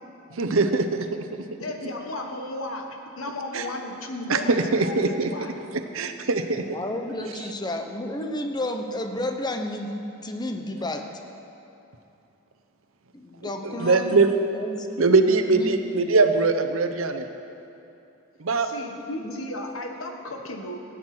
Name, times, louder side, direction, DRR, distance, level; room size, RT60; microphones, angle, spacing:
voice 1, 0.3-1.1 3.5-3.6 4.3-5.3 5.9-6.6 13.6-14.3 15.0-17.3 18.4-18.7, right 3 dB, 80° right, 7 dB, 0.9 m, -21 dB
voice 2, 1.6-5.5 18.6-20.8, left 1 dB, 80° left, 3 dB, 1.5 m, -34 dB
voice 3, 6.7-9.9 10.2-11.1 13.1-14.2 14.5-15.0 15.5-15.8 17.1-17.2 19.2-19.3, left 1 dB, 20° left, 5 dB, 0.9 m, -31 dB
17.0 x 9.3 x 6.1 m, 2.8 s
head